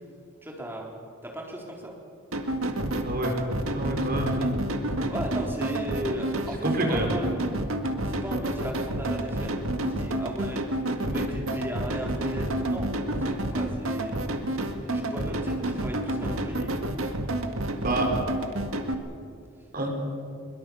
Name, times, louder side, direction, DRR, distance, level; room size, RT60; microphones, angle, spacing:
voice 1, 0.4-0.9 1.2-2.0 5.1-7.3 8.0-10.6 11.0-14.2 14.8-16.7, equal, 10° right, -1 dB, 3.8 m, -36 dB
sound 1, 2.3-18.9, right 1 dB, 80° right, 1.9 m, -29 dB
voice 2, 3.0-3.3 3.7-4.3 6.6-7.1 17.8-18.1 19.7-19.9, right 1 dB, 45° right, 1 dB, 4.8 m, -27 dB
22.5 x 22.0 x 7.0 m, 2.4 s
head